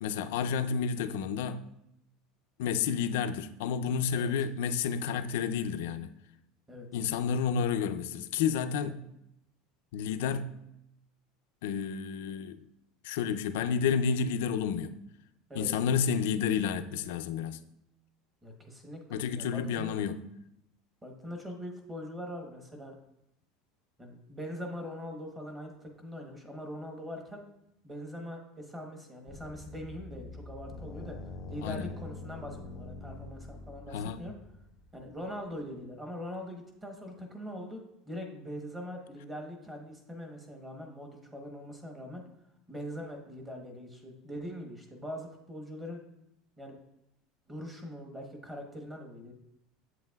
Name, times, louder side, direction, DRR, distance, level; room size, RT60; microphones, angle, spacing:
voice 1, 0.0-1.6 2.6-6.1 6.9-9.0 9.9-10.6 11.6-12.6 13.0-14.9 15.5-17.6 19.1-20.2 31.6-31.9 33.9-34.2, left 7 dB, 85° left, 0.4 m, -30 dB
voice 2, 18.4-20.0 21.0-22.9 24.0-27.4 27.8-31.2 31.5-34.3 34.9-37.8 38.1-42.2 42.7-46.0 46.6-46.8 47.5-49.3, equal, 10° right, 0.9 m, -42 dB
sound 1, 29.3-35.8, left 3 dB, 25° left, 0.4 m, -45 dB
8.1 x 7.7 x 2.3 m
cardioid pair, 175°, 0 cm